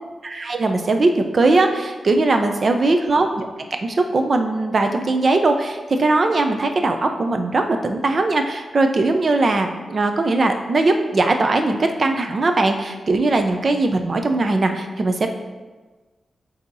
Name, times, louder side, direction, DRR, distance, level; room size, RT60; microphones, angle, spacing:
voice 1, 0.2-3.5 3.8-15.3, right 2 dB, 45° right, 5 dB, 0.5 m, -20 dB
8.3 x 2.8 x 4.0 m, 1.3 s
wide cardioid pair, 135°, 0 cm